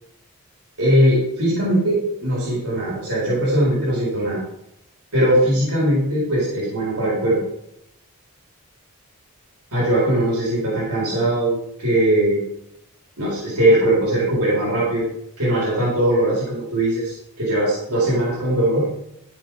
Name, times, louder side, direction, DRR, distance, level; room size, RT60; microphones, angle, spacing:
voice 1, 0.8-4.4 5.1-7.4 9.7-11.5 11.8-12.4 13.2-15.1 15.4-18.9, right 1 dB, 90° right, -6 dB, 4.0 m, -20 dB
13.0 x 6.1 x 4.9 m, 0.80 s
head